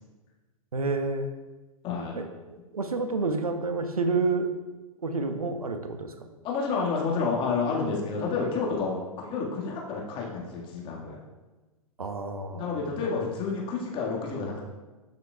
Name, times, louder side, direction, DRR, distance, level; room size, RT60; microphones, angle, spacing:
voice 1, 0.7-1.3 2.1-2.3 2.7-4.5 5.0-6.3 12.0-12.7, right 3 dB, 75° right, 7 dB, 0.9 m, -29 dB
voice 2, 1.8-2.2 6.4-11.2 12.5-14.6, left 4 dB, 25° left, -2 dB, 1.8 m, -30 dB
13.0 x 6.6 x 2.4 m, 1.2 s
figure-of-eight pair, 110°, 19 cm